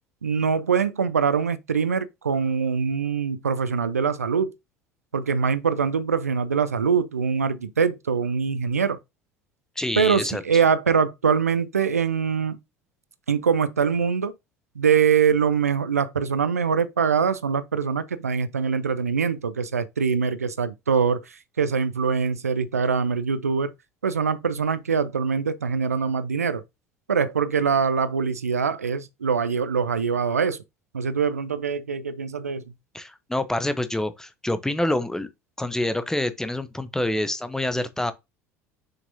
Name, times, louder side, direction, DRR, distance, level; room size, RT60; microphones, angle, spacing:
voice 1, 0.2-4.5 5.1-9.0 10.0-12.6 13.3-14.3 14.8-21.2 21.6-23.7 24.0-26.6 27.1-30.6 30.9-32.6, right 6 dB, 85° right, 0.6 m, -23 dB
voice 2, 9.8-10.6 32.9-35.3 35.6-38.1, left 1 dB, 5° left, 0.9 m, -27 dB
6.8 x 5.9 x 2.7 m
figure-of-eight pair, 70°, 8 cm